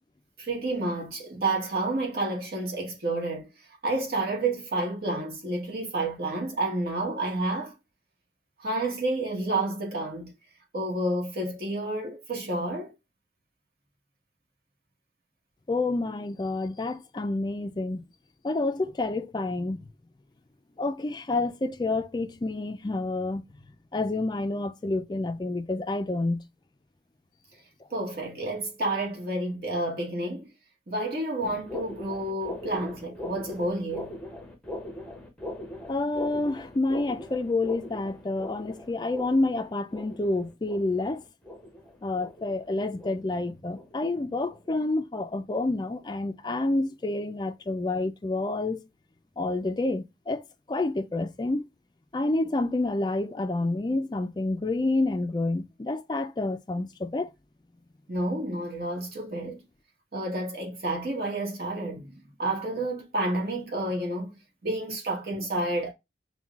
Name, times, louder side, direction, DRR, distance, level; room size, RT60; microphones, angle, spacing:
voice 1, 0.4-3.5 3.8-7.7 8.6-10.3 10.7-12.9 27.9-30.5 30.9-34.2 58.1-59.6 60.1-65.9, right 2 dB, 55° right, 1.2 m, -30 dB
voice 2, 15.7-18.0 18.4-19.9 20.8-23.4 23.9-26.4 35.9-41.2 42.0-48.8 49.4-51.7 52.1-57.3, left 2 dB, 25° left, 0.3 m, -28 dB
sound 1, 31.4-44.2 44.5-44.8 45.2-45.5 46.0-46.2 46.7-46.8 47.5-47.6, left 1 dB, 5° left, 0.7 m, -41 dB
5.5 x 2.2 x 2.3 m
head